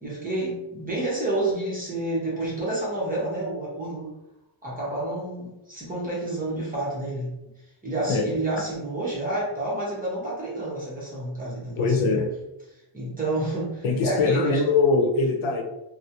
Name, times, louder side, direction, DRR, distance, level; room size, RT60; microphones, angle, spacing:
voice 1, 0.0-4.1 4.6-7.3 7.8-12.2 12.9-14.6, right 2 dB, 20° right, -6 dB, 0.6 m, -29 dB
voice 2, 11.8-12.2 13.8-15.6, left 4 dB, 90° left, 3 dB, 0.7 m, -22 dB
2.3 x 2.0 x 2.7 m, 0.90 s
wide cardioid pair, 175°, 46 cm